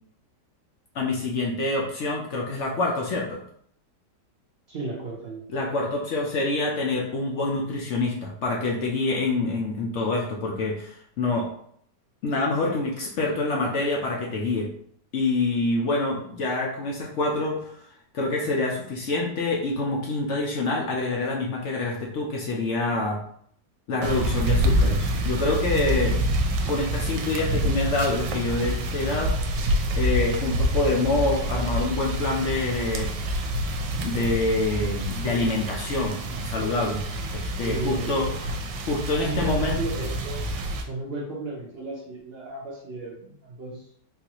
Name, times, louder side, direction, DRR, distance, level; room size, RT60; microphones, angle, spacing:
voice 1, 0.9-3.4 5.5-11.5 12.2-14.7 15.1-23.2 23.9-26.2 26.7-29.3 30.0-33.1 34.0-37.1 37.3-38.3 38.8-39.8, left 2 dB, 65° left, -1 dB, 0.7 m, -26 dB
voice 2, 4.7-5.5 37.6-38.4 39.2-40.4 40.9-43.8, right 3 dB, 60° right, -2 dB, 0.6 m, -34 dB
sound 1, 24.0-40.8, equal, 80° right, 1.2 m, -27 dB
3.9 x 2.5 x 2.9 m, 0.65 s
omnidirectional pair, 1.8 m